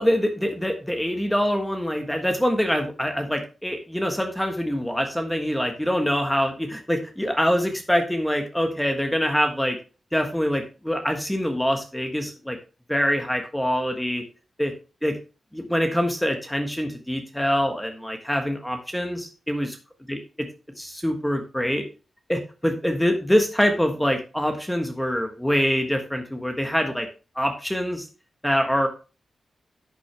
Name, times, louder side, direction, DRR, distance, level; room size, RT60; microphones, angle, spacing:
voice 1, 0.0-9.8 10.1-12.6 12.9-14.2 14.6-14.7 15.0-15.1 15.5-19.8 20.1-20.2 20.8-21.8 22.3-27.1 27.3-28.1 28.4-28.9, equal, 5° left, 4 dB, 1.3 m, -24 dB
11.0 x 6.1 x 3.4 m, 0.33 s
wide cardioid pair, 105°, 0 cm